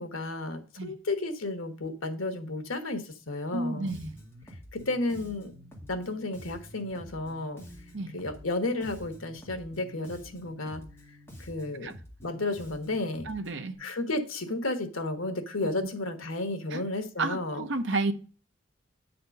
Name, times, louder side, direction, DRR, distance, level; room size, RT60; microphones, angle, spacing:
voice 1, 0.0-3.9 4.7-5.5 5.9-7.6 8.1-10.8 11.4-11.9 12.2-13.2 13.8-17.6, left 2 dB, 85° left, 1.4 m, -32 dB
voice 2, 3.5-4.2 7.9-8.1 11.8-11.9 13.3-13.8 16.7-16.8 17.2-18.1, right 3 dB, 60° right, 0.8 m, -31 dB
Bass guitar, 3.9-13.7, equal, 10° left, 1.9 m, -48 dB
9.2 x 4.3 x 5.2 m
head